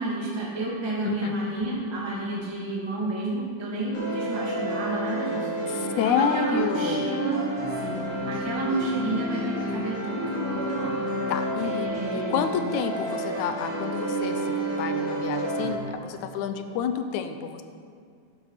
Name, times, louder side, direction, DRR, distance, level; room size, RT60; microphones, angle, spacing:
voice 1, 0.0-7.4 7.8-11.0 11.6-12.4, right 2 dB, 10° right, -5 dB, 1.9 m, -31 dB
voice 2, 1.1-1.4 5.7-7.1 11.3-17.6, left 7 dB, 75° left, 8 dB, 1.9 m, -29 dB
sound 1, 3.9-15.7, right 1 dB, 50° left, 4.6 m, -30 dB
11.5 x 10.5 x 5.8 m, 2.2 s
omnidirectional pair, 3.7 m